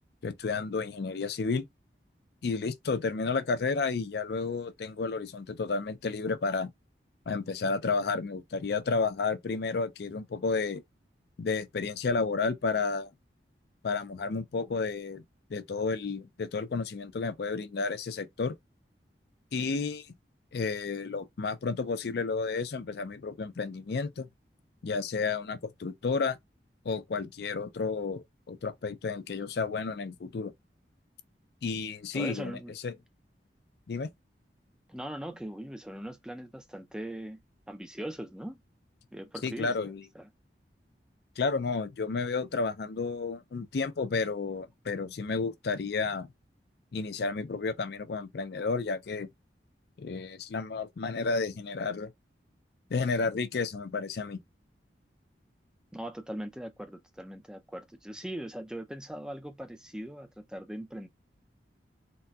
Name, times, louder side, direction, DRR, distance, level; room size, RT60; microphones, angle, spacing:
voice 1, 0.2-1.7 2.4-6.7 7.3-10.8 11.4-13.1 13.8-15.2 15.5-18.5 19.5-20.1 20.5-24.3 24.8-26.4 26.8-30.5 31.6-32.9 33.9-34.1 39.4-40.0 41.4-46.3 46.9-49.3 50.0-52.1 52.9-54.4, left 4 dB, 65° left, 0.4 m, -31 dB
voice 2, 32.1-32.7 34.9-37.4 37.7-38.6 39.1-40.3 55.9-61.1, right 1 dB, 5° right, 0.4 m, -40 dB
4.0 x 2.2 x 2.2 m
head